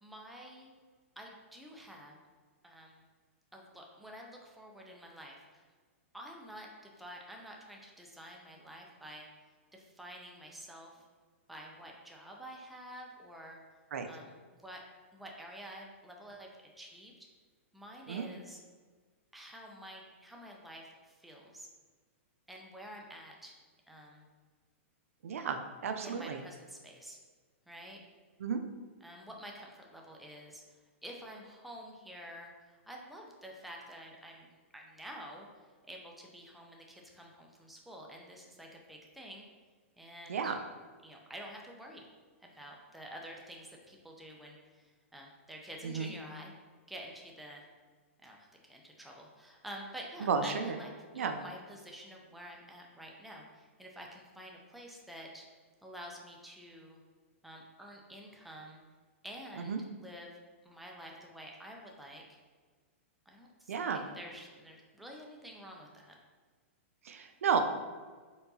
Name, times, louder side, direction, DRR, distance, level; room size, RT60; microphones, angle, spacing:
voice 1, 0.0-0.7 1.2-2.2 2.6-3.0 3.5-5.6 6.1-9.3 9.7-11.0 11.5-13.6 14.0-14.8 15.1-16.5 16.8-17.3 17.7-18.6 19.3-21.7 22.5-23.5 23.9-24.3 26.0-27.2 27.7-28.0 29.0-30.6 31.0-35.5 35.9-39.4 40.0-40.6 41.0-42.1 42.4-46.5 46.9-47.6 48.2-55.5 55.8-57.0 57.4-58.8 59.2-60.4 60.6-62.4 63.3-66.1, equal, ahead, -1 dB, 0.5 m, -49 dB
voice 2, 25.2-26.4 28.4-28.6 40.3-40.6 45.8-46.1 50.2-50.8 51.2-51.4 59.7-59.8 63.7-64.0 67.1-67.6, right 6 dB, 85° right, 7 dB, 0.5 m, -32 dB
4.5 x 3.8 x 2.7 m, 1.4 s
hypercardioid pair, 150°, 7 cm